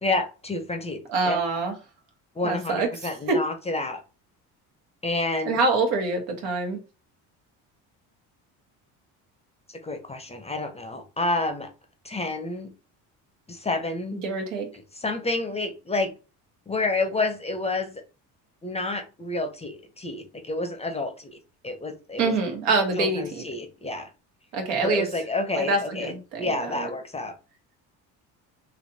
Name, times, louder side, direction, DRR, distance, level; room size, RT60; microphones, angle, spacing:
voice 1, 0.0-1.4 2.4-4.0 5.0-5.6 9.7-11.7 12.0-12.7 13.5-14.2 15.0-16.1 16.7-17.9 18.6-21.4 21.6-22.4 23.0-24.1 24.8-26.1 26.4-27.3, left 2 dB, 15° left, 7 dB, 0.6 m, -29 dB
voice 2, 1.1-1.7 2.4-3.4 5.4-6.8 14.1-14.7 22.2-23.4 24.5-25.1 25.5-26.9, right 3 dB, 85° right, 3 dB, 1.3 m, -25 dB
3.2 x 2.8 x 2.7 m, 0.33 s
supercardioid pair, 85°, 40 cm